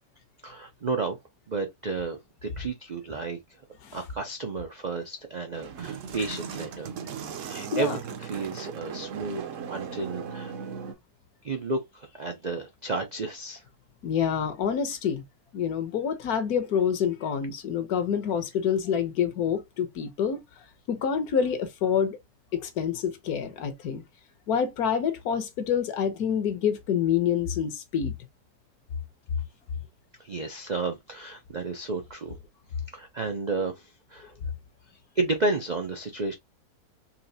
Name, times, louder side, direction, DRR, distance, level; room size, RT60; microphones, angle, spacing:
voice 1, 0.4-1.2 1.5-3.4 3.9-6.9 7.4-9.4 9.7-10.7 11.4-13.6 30.2-32.4 32.9-34.3 35.2-36.3, right 3 dB, 80° right, 0.4 m, -32 dB
sound 1, 5.5-10.9, right 7 dB, 60° right, 0.9 m, -37 dB
voice 2, 14.0-15.2 15.5-20.4 20.9-22.2 22.5-24.0 24.5-28.1, left 7 dB, 65° left, 1.3 m, -27 dB
4.3 x 3.1 x 2.7 m
omnidirectional pair, 1.8 m